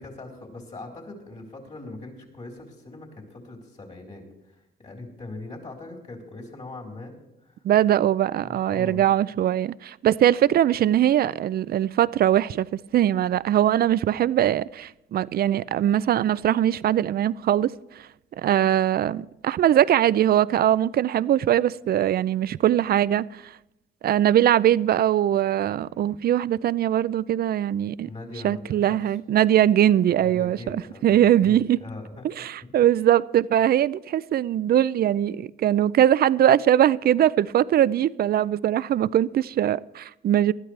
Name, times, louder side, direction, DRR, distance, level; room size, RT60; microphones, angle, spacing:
voice 1, 0.0-7.1 7.4-7.5 8.4-9.1 28.0-29.0 30.2-31.2 31.4-32.2 32.6-32.7, left 2 dB, 35° left, 4.1 m, -40 dB
voice 2, 7.6-17.7 18.4-23.5 24.0-28.1 28.4-30.8 31.0-31.8 32.2-40.5, right 11 dB, 50° right, 0.4 m, -21 dB
19.0 x 12.5 x 3.3 m
cardioid pair, 90°, 20 cm